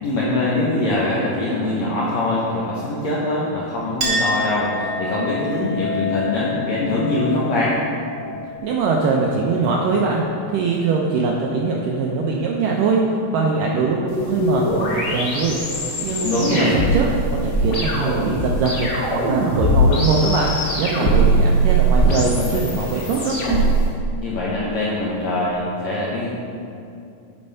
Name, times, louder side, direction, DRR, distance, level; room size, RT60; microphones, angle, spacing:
voice 1, 0.0-7.8 16.2-16.7 24.2-26.4, left 2 dB, 75° left, -7 dB, 1.6 m, -23 dB
Chink clink, 4.0-11.1, left 2 dB, 50° right, 0.9 m, -29 dB
voice 2, 8.3-10.2 10.5-13.0 13.3-15.6 16.0-23.4, right 4 dB, 80° right, -1 dB, 1.9 m, -22 dB
sound 1, 14.1-23.8, right 1 dB, 45° left, 2.1 m, -21 dB
8.8 x 5.3 x 5.4 m, 2.5 s
omnidirectional pair, 4.5 m